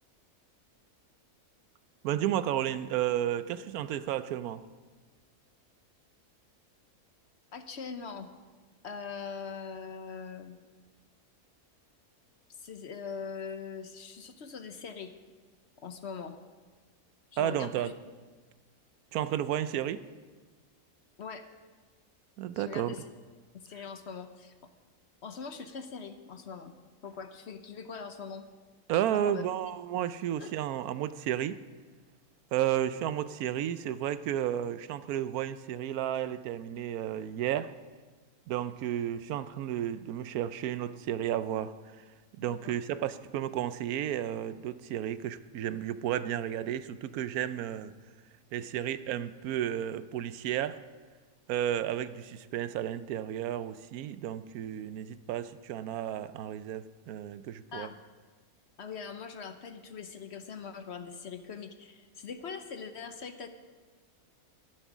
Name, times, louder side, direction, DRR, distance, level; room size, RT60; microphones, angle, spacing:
voice 1, 2.0-4.6 17.4-17.9 19.1-20.0 22.4-22.9 28.9-31.6 32.5-37.7 38.5-42.0 42.4-47.9 48.5-50.8 51.5-57.9, right 11 dB, 80° right, 14 dB, 1.1 m, -32 dB
voice 2, 7.5-8.3 8.8-10.6 12.6-15.1 15.8-16.4 17.3-17.9 21.2-21.5 22.5-23.0 23.5-24.7 25.2-26.7 27.0-28.5 29.1-29.5 30.4-30.5 42.4-42.8 45.9-46.0 48.9-49.0 57.7-58.0 58.8-63.5, left 5 dB, 55° left, 8 dB, 0.9 m, -42 dB
11.5 x 11.0 x 6.1 m, 1.4 s
omnidirectional pair, 1.5 m